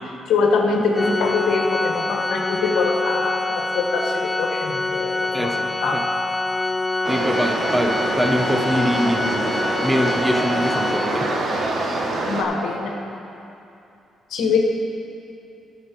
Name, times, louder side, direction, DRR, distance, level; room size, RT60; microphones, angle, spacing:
voice 1, 0.3-5.5 5.8-6.0 12.3-12.9 14.3-14.6, left 4 dB, 80° left, 1 dB, 1.3 m, -23 dB
Organ, 0.9-11.7, left 2 dB, 15° left, 0.3 m, -25 dB
voice 2, 5.3-6.0 7.1-9.5 9.8-11.3, equal, 5° right, 3 dB, 0.8 m, -23 dB
sound 1, 7.0-12.4, right 2 dB, 55° right, 1.3 m, -25 dB
12.5 x 6.8 x 4.6 m, 2.7 s
cardioid pair, 90°, 0 cm